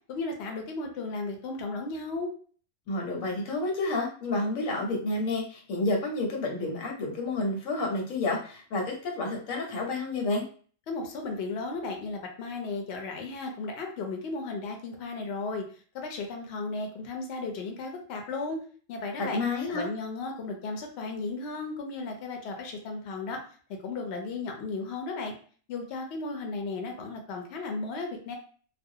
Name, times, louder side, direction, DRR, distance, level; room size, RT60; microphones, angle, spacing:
voice 1, 0.1-2.3 10.9-15.6 15.9-18.6 18.9-19.4 19.7-23.4 23.8-25.3 25.7-28.4, left 3 dB, 65° left, 3 dB, 0.8 m, -35 dB
voice 2, 2.9-10.4 19.2-19.9, left 2 dB, 85° left, 0 dB, 1.1 m, -30 dB
2.4 x 2.1 x 2.7 m, 0.43 s
omnidirectional pair, 1.3 m